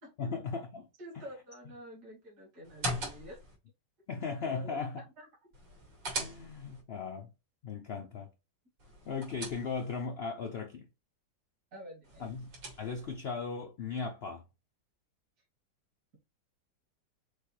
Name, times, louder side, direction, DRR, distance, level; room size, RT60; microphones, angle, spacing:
voice 1, 0.2-0.9 4.1-5.0 6.2-7.3 7.6-8.3 9.1-10.9 12.2-12.5 12.8-14.4, left 5 dB, 85° left, 0.5 m, -37 dB
voice 2, 1.0-3.4 4.1-5.3 11.7-12.3, equal, 60° right, 2.5 m, -48 dB
sound 1, 2.6-3.5 5.5-6.8 8.8-10.1 12.0-13.2, right 1 dB, 85° right, 2.8 m, -40 dB
6.5 x 2.3 x 3.1 m
omnidirectional pair, 1.9 m